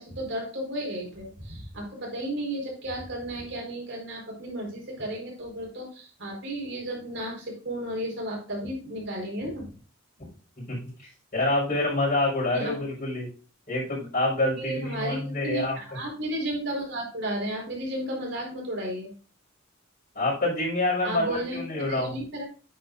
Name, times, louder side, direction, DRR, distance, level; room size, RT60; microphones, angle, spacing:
voice 1, 0.0-9.7 12.5-12.7 14.6-19.1 21.0-22.5, right 1 dB, 65° right, -1 dB, 4.5 m, -33 dB
voice 2, 10.7-13.3 13.7-15.7 20.1-22.2, left 2 dB, 45° left, -8 dB, 5.0 m, -27 dB
9.4 x 8.3 x 2.6 m, 0.38 s
head